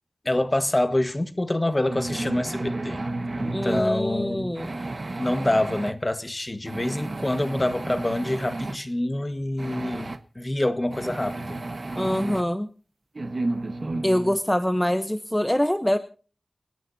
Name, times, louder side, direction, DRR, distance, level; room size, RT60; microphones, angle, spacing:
voice 1, 0.2-3.0 3.4-4.6 5.2-11.6, left 1 dB, 30° left, 1.6 m, -26 dB
sound 1, 1.9-3.9 4.6-5.9 6.7-8.8 9.6-10.2 10.9-12.4 13.2-14.4, right 2 dB, 55° right, 1.3 m, -32 dB
voice 2, 3.5-4.7 11.9-12.7 14.0-16.0, equal, 10° left, 1.0 m, -24 dB
30.0 x 10.0 x 2.8 m
wide cardioid pair, 60°, 0 cm